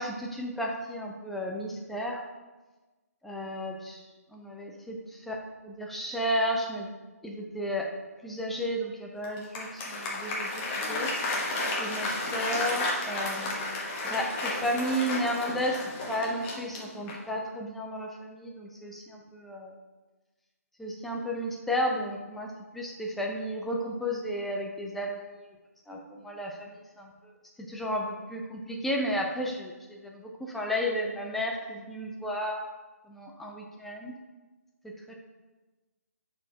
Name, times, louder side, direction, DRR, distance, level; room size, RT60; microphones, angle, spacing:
voice 1, 0.0-2.2 3.2-4.0 4.3-5.4 5.6-6.9 7.2-7.9 8.2-10.5 10.9-11.5 11.8-19.7 20.8-25.5 25.9-27.3 27.7-32.7 33.1-34.1 34.8-35.1, equal, ahead, 0 dB, 0.5 m, -33 dB
Applause, 9.2-17.4, left 2 dB, 20° left, 1.1 m, -32 dB
4.7 x 4.3 x 5.6 m, 1.2 s
hypercardioid pair, 155°, 9 cm